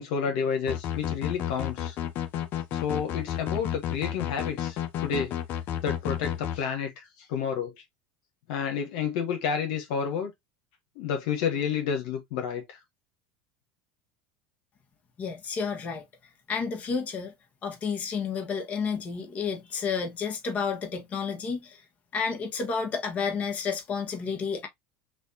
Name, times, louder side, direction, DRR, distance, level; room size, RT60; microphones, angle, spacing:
voice 1, 0.0-2.0 2.7-5.4 5.8-7.7 8.5-10.3 10.9-12.8, left 7 dB, 75° left, 1.4 m, -30 dB
sound 1, 0.7-6.6, left 10 dB, 55° left, 0.7 m, -31 dB
voice 2, 15.2-16.0 16.5-17.3 17.6-21.8 22.1-24.7, left 5 dB, 35° left, 1.5 m, -31 dB
6.1 x 2.6 x 2.8 m
supercardioid pair, 110°, 4 cm